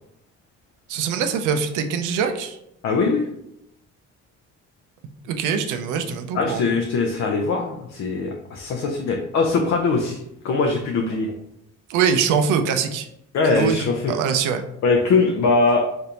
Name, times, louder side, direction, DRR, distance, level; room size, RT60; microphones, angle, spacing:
voice 1, 0.9-2.6 5.3-6.7 11.9-13.1 13.4-14.6, right 6 dB, 85° right, 7 dB, 0.5 m, -23 dB
voice 2, 2.8-3.2 6.3-10.2 10.4-11.3 13.3-14.1 14.8-15.8, left 3 dB, 60° left, 1 dB, 0.5 m, -21 dB
3.3 x 2.6 x 2.8 m, 0.80 s
cardioid pair, 90°, 30 cm